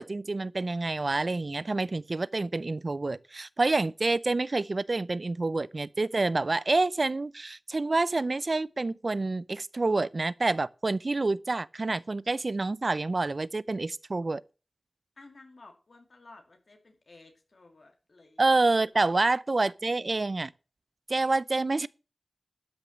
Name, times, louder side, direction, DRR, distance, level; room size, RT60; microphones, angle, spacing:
voice 1, 0.0-14.4 18.4-20.5 21.1-21.9, right 3 dB, 60° right, 0.4 m, -28 dB
voice 2, 15.2-18.4 18.9-19.2, left 3 dB, 80° left, 2.4 m, -54 dB
12.5 x 6.1 x 6.4 m
wide cardioid pair, 45°, 0 cm